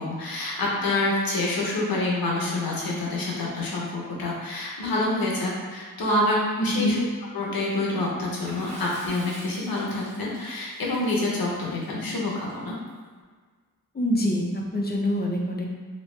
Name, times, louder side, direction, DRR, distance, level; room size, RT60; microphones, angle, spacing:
voice 1, 0.0-7.0 7.3-12.8, left 2 dB, 85° left, -4 dB, 0.9 m, -27 dB
voice 2, 6.6-7.0 13.9-15.7, left 1 dB, 30° left, -1 dB, 0.6 m, -25 dB
Water / Splash splatter, 8.4-12.9, right 1 dB, 50° right, 1.0 m, -46 dB
3.1 x 2.8 x 3.2 m, 1.5 s
wide cardioid pair, 95°, 35 cm